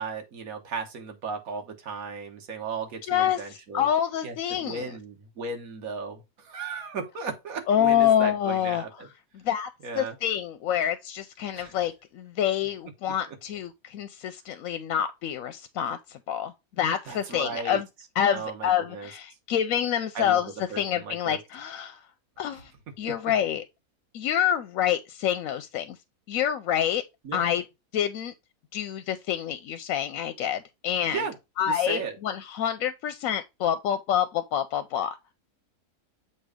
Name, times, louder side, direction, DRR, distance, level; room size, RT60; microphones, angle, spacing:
voice 1, 0.0-3.9 4.2-9.1 9.8-10.2 11.6-11.7 17.1-17.8 18.3-19.1 20.2-20.4 20.7-21.4 27.2-27.4 31.1-31.3 31.7-32.2, right 5 dB, 60° right, 1.7 m, -35 dB
voice 2, 3.1-4.9 7.7-8.8 9.4-9.7 9.9-17.9 18.2-22.0 22.4-22.7 23.0-23.6 24.1-26.0 26.3-27.0 27.3-27.6 27.9-28.3 28.7-31.2 31.6-35.1, left 10 dB, 70° left, 0.9 m, -27 dB
7.7 x 2.6 x 4.9 m
omnidirectional pair, 1.7 m